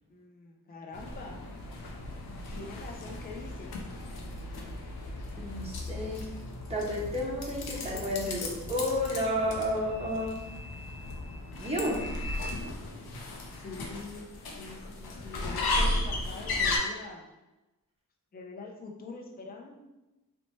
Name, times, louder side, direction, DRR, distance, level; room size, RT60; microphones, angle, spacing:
voice 1, 0.1-1.4 2.5-3.7 11.8-12.2 13.6-14.3 14.6-17.3 18.3-19.7, left 3 dB, 25° left, 1 dB, 0.4 m, -44 dB
sound 1, 0.9-16.8, left 2 dB, 85° left, 0.5 m, -35 dB
voice 2, 5.4-6.2 6.7-10.4 11.6-12.1, equal, 15° right, -5 dB, 0.9 m, -31 dB
2.9 x 2.1 x 2.9 m, 1.0 s
cardioid pair, 60°, 36 cm